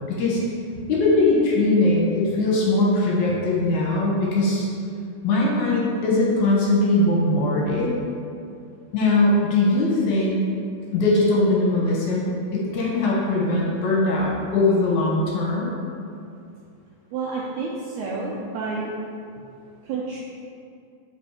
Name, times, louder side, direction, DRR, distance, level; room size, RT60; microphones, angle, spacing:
voice 1, 0.1-0.4 0.9-4.7 5.2-7.9 8.9-10.3 10.9-15.7, left 2 dB, 65° left, -4 dB, 2.3 m, -20 dB
voice 2, 17.1-18.9 19.8-20.2, right 4 dB, 75° right, -4 dB, 1.8 m, -29 dB
7.6 x 5.3 x 4.9 m, 2.4 s
omnidirectional pair, 4.2 m